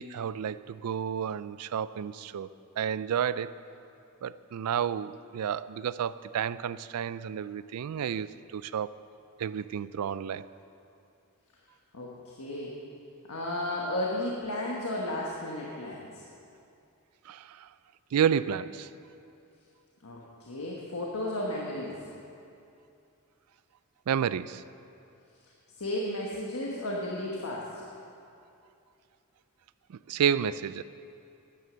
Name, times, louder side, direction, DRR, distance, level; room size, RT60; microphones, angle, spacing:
voice 1, 0.0-2.5 2.8-3.6 4.2-9.0 9.4-10.5 17.3-17.7 18.1-18.9 24.1-24.6 29.9-30.8, right 8 dB, 80° right, 17 dB, 0.4 m, -31 dB
voice 2, 11.9-12.7 13.3-16.2 20.0-22.0 25.8-27.8, left 1 dB, 70° left, -3 dB, 1.3 m, -34 dB
12.5 x 9.4 x 6.2 m, 2.6 s
head